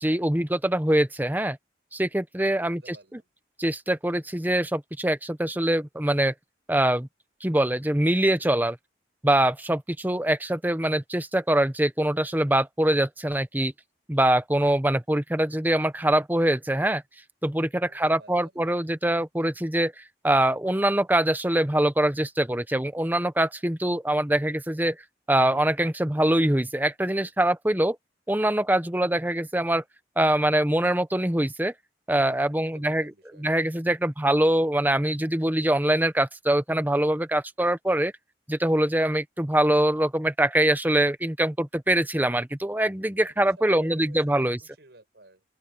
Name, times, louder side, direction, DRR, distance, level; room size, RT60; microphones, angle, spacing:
voice 1, 0.0-1.6 1.9-3.0 3.6-6.3 6.7-7.1 7.4-8.8 9.2-13.7 14.1-17.0 17.4-25.0 25.3-28.0 28.3-29.8 30.2-31.7 32.1-33.1 33.4-38.1 38.5-44.6, right 1 dB, 10° right, 0.9 m, -23 dB
voice 2, 2.6-3.3 17.9-18.5 32.5-33.6 43.2-45.4, right 2 dB, 70° right, 6.8 m, -53 dB
open air
head